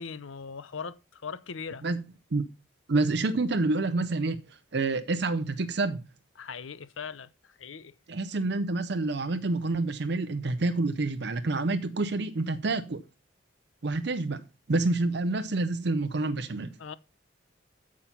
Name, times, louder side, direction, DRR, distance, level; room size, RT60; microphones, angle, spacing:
voice 1, 0.0-1.8 6.4-7.9 16.8-16.9, left 5 dB, 90° left, 0.7 m, -40 dB
voice 2, 2.9-6.0 8.1-13.0 13.8-14.4 14.7-16.7, right 2 dB, 60° right, 0.6 m, -28 dB
8.9 x 7.3 x 5.6 m
head